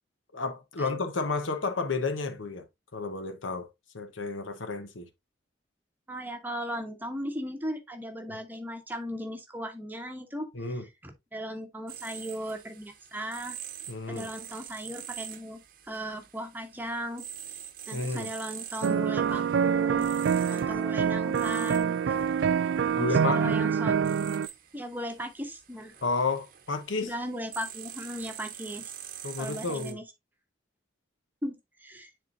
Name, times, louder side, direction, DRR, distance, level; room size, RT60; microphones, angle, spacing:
voice 1, 0.3-2.6 2.9-3.7 3.9-5.1 10.5-10.8 13.9-14.3 17.9-18.3 23.0-23.6 26.0-27.1 29.2-30.0, left 3 dB, 90° left, 1.0 m, -31 dB
voice 2, 6.1-13.6 14.1-17.2 17.9-20.1 20.5-22.2 23.0-24.0 24.7-25.9 27.0-28.9 29.4-30.0 31.4-32.1, equal, 10° right, 0.9 m, -37 dB
sound 1, 11.9-29.9, right 10 dB, 45° right, 0.8 m, -45 dB
sound 2, 18.8-24.5, right 7 dB, 65° right, 0.3 m, -26 dB
9.8 x 3.7 x 2.5 m
head